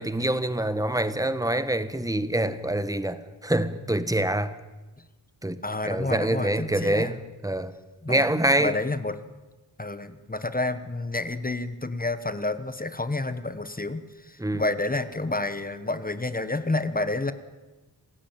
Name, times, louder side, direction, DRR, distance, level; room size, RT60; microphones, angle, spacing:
voice 1, 0.0-4.6 5.4-7.2 7.4-7.7 8.1-8.8 14.4-14.6, right 1 dB, 10° right, 13 dB, 1.3 m, -25 dB
voice 2, 5.6-7.2 8.0-9.2 9.8-17.3, left 2 dB, 20° left, 12 dB, 1.2 m, -29 dB
26.5 x 16.0 x 9.1 m, 1.2 s
wide cardioid pair, 120°, 42 cm